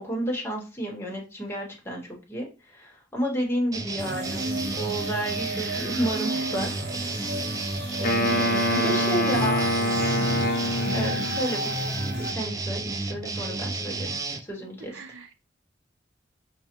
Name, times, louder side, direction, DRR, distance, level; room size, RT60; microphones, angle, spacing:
voice 1, 0.0-6.7 8.0-9.7 10.9-11.7 12.2-15.0, equal, 15° left, 1.0 m, -31 dB
sound 1, 3.7-14.4, right 3 dB, 20° right, 0.3 m, -32 dB
sound 2, 4.0-12.3, right 1 dB, 60° right, 1.5 m, -32 dB
Wind instrument woodwind instrument, 8.0-11.5, equal, 50° left, 0.7 m, -25 dB
voice 2, 8.7-9.0 14.9-15.3, right 5 dB, 75° right, 0.5 m, -35 dB
5.4 x 2.1 x 2.9 m
head